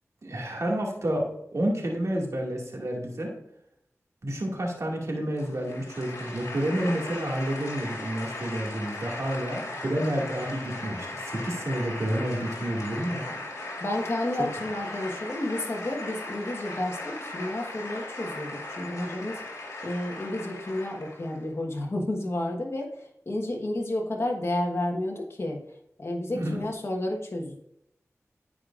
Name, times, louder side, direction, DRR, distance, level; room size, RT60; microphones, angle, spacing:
voice 1, 0.2-3.3 4.2-13.3 13.5-13.7 14.4-14.5 26.3-26.6, right 1 dB, 65° right, -1 dB, 2.2 m, -30 dB
sound 1, 5.4-21.4, left 2 dB, 80° left, 2.0 m, -38 dB
voice 2, 13.8-27.7, left 1 dB, 50° left, 0 dB, 1.3 m, -31 dB
14.0 x 5.0 x 2.5 m, 0.75 s
cardioid pair, 50°, 6 cm